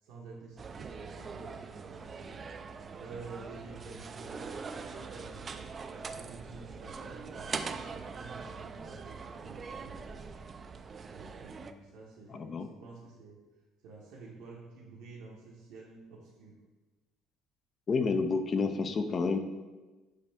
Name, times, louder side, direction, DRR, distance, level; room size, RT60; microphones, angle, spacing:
voice 1, 0.0-2.4 3.0-5.7 6.1-10.2 11.1-13.4 13.8-16.6, right 3 dB, 70° right, -3 dB, 0.8 m, -50 dB
sound 1, 0.6-11.7, right 5 dB, 40° right, 0.3 m, -42 dB
voice 2, 12.3-12.7 17.9-19.4, left 4 dB, 40° left, 8 dB, 0.4 m, -29 dB
6.5 x 2.5 x 3.3 m, 1.2 s
hypercardioid pair, 60°, 0 cm